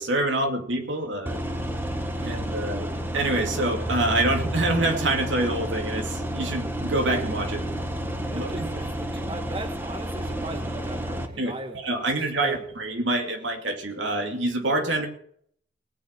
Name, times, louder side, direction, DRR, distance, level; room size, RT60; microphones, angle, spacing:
voice 1, 0.0-1.4 2.2-7.7 8.3-8.7 11.4-15.1, right 2 dB, 85° right, 2.4 m, -26 dB
sound 1, 1.3-11.3, right 1 dB, 10° right, 1.4 m, -30 dB
voice 2, 8.3-11.8 12.4-12.6, right 1 dB, 30° right, 1.4 m, -38 dB
19.0 x 6.3 x 8.9 m
head